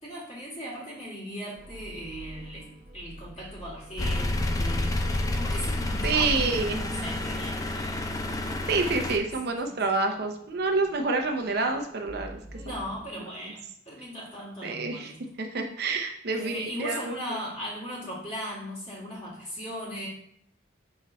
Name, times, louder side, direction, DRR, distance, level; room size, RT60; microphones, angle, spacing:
voice 1, 0.0-5.1 5.3-8.0 9.6-9.7 12.5-15.2 16.3-20.1, equal, 35° left, -5 dB, 2.3 m, -38 dB
sound 1, 1.6-13.1, equal, 30° right, 1.2 m, -46 dB
sound 2, 4.0-9.2, left 1 dB, 20° left, 0.4 m, -29 dB
voice 2, 6.0-6.8 8.7-12.4 14.6-15.1 15.4-17.1, right 3 dB, 55° right, 4 dB, 0.6 m, -28 dB
5.8 x 4.0 x 4.1 m, 0.69 s
head